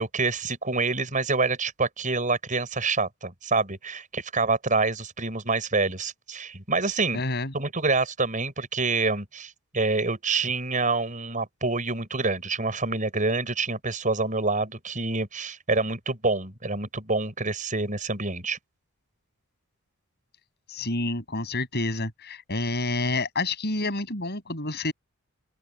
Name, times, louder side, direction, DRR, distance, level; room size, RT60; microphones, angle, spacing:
voice 1, 0.0-7.2 7.5-18.6, right 3 dB, 35° right, 6.2 m, -27 dB
voice 2, 7.1-7.5 20.7-24.9, left 2 dB, 45° left, 7.7 m, -28 dB
open air
head